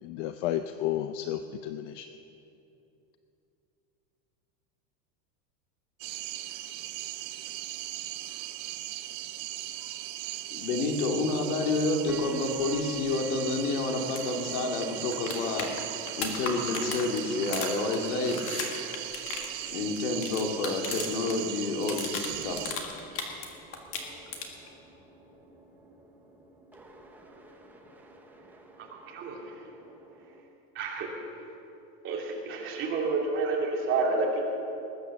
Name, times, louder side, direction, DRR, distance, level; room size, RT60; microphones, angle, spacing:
voice 1, 0.0-2.1, left 12 dB, 55° left, 10 dB, 0.6 m, -32 dB
sound 1, 6.0-22.7, right 15 dB, 40° right, 0.7 m, -38 dB
voice 2, 10.5-18.4 19.7-22.8, left 3 dB, 80° left, 3 dB, 2.3 m, -29 dB
sound 2, 12.1-30.4, right 3 dB, 5° right, 0.8 m, -50 dB
sound 3, 14.1-14.2 14.5-14.6 14.8-21.4 21.6-23.5 23.7-24.7 26.7-26.8, left 5 dB, 30° left, 1.7 m, -36 dB
voice 3, 28.8-29.7 30.7-31.1 32.0-34.4, right 3 dB, 25° right, -2 dB, 2.6 m, -30 dB
20.0 x 9.2 x 7.1 m, 2.8 s
supercardioid pair, 165°, 44 cm